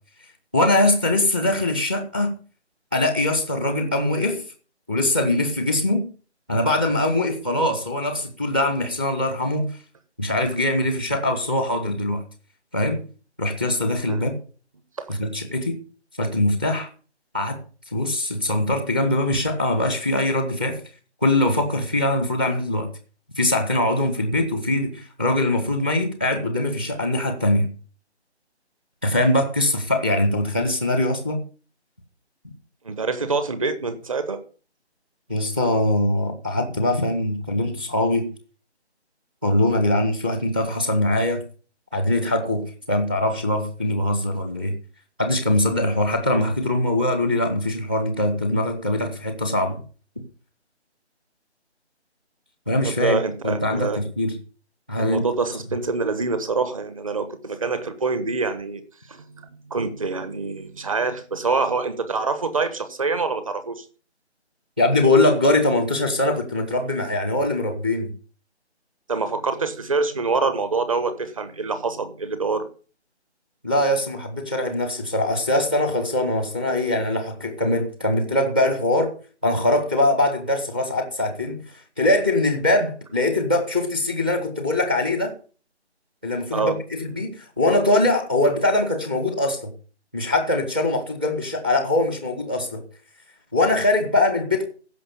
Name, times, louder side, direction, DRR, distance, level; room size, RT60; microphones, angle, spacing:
voice 1, 0.5-2.3 2.9-4.4 4.9-6.0 6.5-9.8 10.2-12.2 12.7-13.0 13.4-14.3 15.1-15.8 16.2-16.9 17.3-17.6 17.9-20.8 21.2-22.9 23.4-27.7 29.0-31.4 35.3-38.3 39.4-41.4 41.9-44.7 45.2-49.8 52.7-54.3 54.9-55.3 64.8-68.1 73.6-79.1 79.4-85.3 86.2-89.7 90.1-92.8 93.5-94.6, left 1 dB, 10° right, 0.7 m, -22 dB
voice 2, 32.8-34.4 52.8-54.0 55.0-58.8 59.1-63.8 69.1-72.7 86.5-86.7, right 4 dB, 30° right, 1.2 m, -25 dB
15.0 x 5.6 x 6.8 m
figure-of-eight pair, 160°, 34 cm